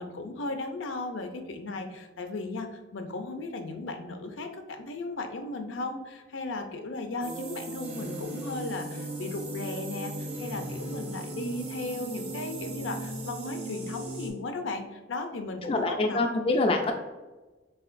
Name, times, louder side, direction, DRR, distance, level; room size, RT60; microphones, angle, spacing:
voice 1, 0.0-16.2, left 2 dB, 85° left, 5 dB, 0.6 m, -36 dB
sound 1, 7.2-14.3, right 1 dB, 30° right, 1.0 m, -37 dB
voice 2, 15.6-16.9, left 2 dB, 30° left, 4 dB, 0.3 m, -25 dB
4.8 x 3.7 x 2.5 m, 1.2 s
head